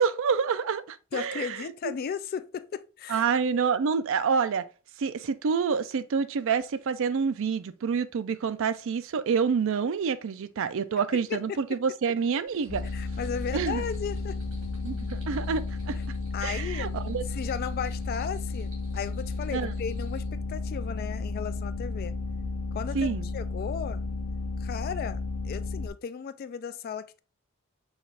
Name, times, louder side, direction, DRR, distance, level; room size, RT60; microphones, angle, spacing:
voice 1, 0.0-1.6 1.8-1.9 3.1-4.7 5.0-12.9 13.5-13.8 14.8-16.0 16.4-17.2 19.5-19.7 22.9-23.3, right 6 dB, 65° right, 0.4 m, -27 dB
voice 2, 1.1-3.2 11.1-11.6 12.9-14.4 16.3-16.9 17.3-22.2 22.7-24.0 24.6-27.2, left 7 dB, 45° left, 0.3 m, -35 dB
sound 1, 12.5-20.3, right 1 dB, 85° right, 2.3 m, -53 dB
sound 2, 12.7-25.9, left 3 dB, 90° left, 0.6 m, -33 dB
6.3 x 2.4 x 3.3 m
head